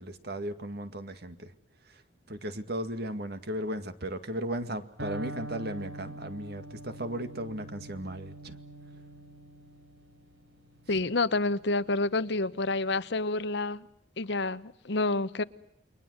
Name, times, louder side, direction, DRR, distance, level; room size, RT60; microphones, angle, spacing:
voice 1, 0.0-1.5 2.3-8.6, right 1 dB, 55° right, 2.0 m, -36 dB
Electric guitar, 5.0-12.8, right 1 dB, 80° right, 4.2 m, -45 dB
voice 2, 10.9-13.9 14.2-15.4, left 2 dB, 65° left, 0.9 m, -28 dB
29.5 x 23.0 x 8.0 m
head